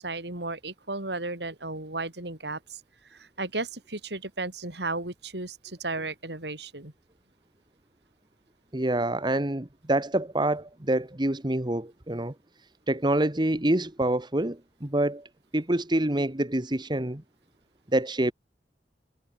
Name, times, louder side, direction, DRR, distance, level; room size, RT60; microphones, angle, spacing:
voice 1, 0.0-2.8 3.1-6.9, right 2 dB, 70° right, 5.0 m, -34 dB
voice 2, 8.7-12.3 12.9-15.3 15.5-17.2 17.9-18.3, right 1 dB, 25° right, 1.5 m, -26 dB
head